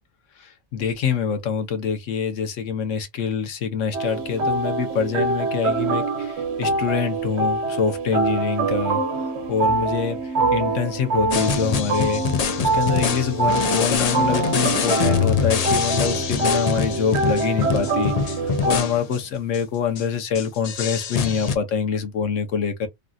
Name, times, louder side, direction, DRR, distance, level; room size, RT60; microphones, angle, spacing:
voice 1, 0.7-9.0 9.5-10.2 10.5-12.2 12.6-18.4 18.6-22.9, left 7 dB, 80° left, 1.1 m, -25 dB
sound 1, 3.9-18.8, right 3 dB, 65° right, 1.0 m, -24 dB
sound 2, 11.3-19.2 19.5-19.6 20.0-20.1 20.3-21.6, left 6 dB, 65° left, 0.4 m, -25 dB
3.2 x 2.5 x 2.3 m
omnidirectional pair, 1.3 m